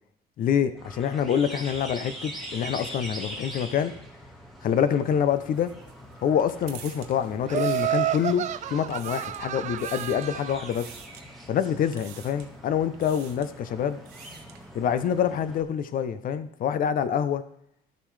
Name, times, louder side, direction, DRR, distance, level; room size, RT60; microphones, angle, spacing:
voice 1, 0.4-3.9 4.6-5.7 6.2-10.9 11.5-14.0 14.7-17.4, left 8 dB, 55° left, 12 dB, 0.7 m, -26 dB
sound 1, 0.8-15.6, equal, ahead, 1.7 m, -43 dB
sound 2, 5.3-8.4 8.8-9.5 9.8-10.3 10.7-11.2 11.9-12.6 12.9-13.5 13.9-14.7, right 9 dB, 85° right, 0.8 m, -47 dB
Laughter, 7.5-10.7, right 12 dB, 45° right, 0.4 m, -30 dB
12.5 x 6.7 x 3.3 m, 0.77 s
cardioid pair, 110°, 17 cm